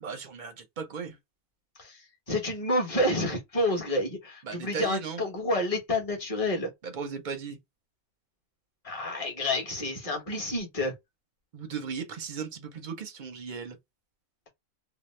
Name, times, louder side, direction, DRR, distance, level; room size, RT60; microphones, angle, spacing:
voice 1, 0.0-1.2 4.4-5.2 6.8-7.6 11.5-13.8, right 6 dB, 50° right, 0.6 m, -36 dB
voice 2, 2.3-6.7 8.8-10.9, left 1 dB, 30° left, 1.0 m, -29 dB
2.7 x 2.1 x 3.0 m
omnidirectional pair, 1.4 m